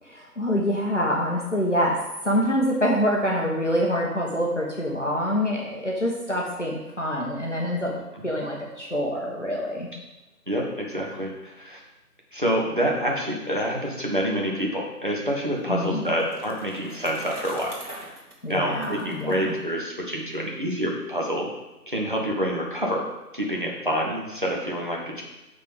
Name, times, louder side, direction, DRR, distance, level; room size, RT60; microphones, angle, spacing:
voice 1, 0.0-8.0 8.2-9.9 15.7-16.1 18.4-19.6, equal, 50° left, -2 dB, 1.1 m, -26 dB
voice 2, 10.5-11.8 12.3-17.7 18.5-21.5 21.9-23.0 23.3-25.2, equal, 30° right, -2 dB, 1.3 m, -27 dB
Bicycle, 15.6-20.3, right 1 dB, 65° right, 2.3 m, -45 dB
6.2 x 5.8 x 5.2 m, 1.0 s
figure-of-eight pair, 175°, 48 cm